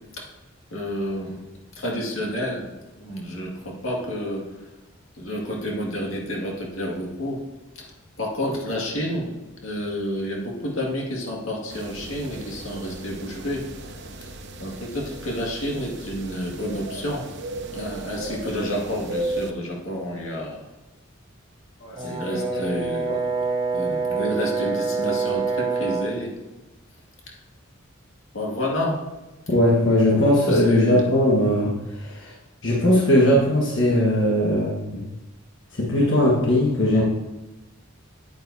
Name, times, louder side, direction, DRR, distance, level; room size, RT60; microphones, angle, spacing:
voice 1, 0.7-1.4 1.8-2.7 3.0-4.5 5.2-7.4 7.8-7.9 8.2-9.3 9.6-13.6 14.2-14.3 14.6-17.3 17.7-20.6 22.0-23.2 23.7-26.3 27.3-27.4 28.3-29.0 30.1-31.1, equal, 85° left, -2 dB, 2.0 m, -29 dB
sound 1, 11.7-19.5, right 2 dB, 55° right, 0.8 m, -35 dB
Brass instrument, 22.0-26.2, right 4 dB, 25° right, 0.8 m, -26 dB
voice 2, 22.3-22.6 29.5-32.3 32.6-35.0 35.8-37.0, left 1 dB, 60° left, -4 dB, 1.4 m, -19 dB
9.3 x 9.2 x 2.7 m, 1.1 s
head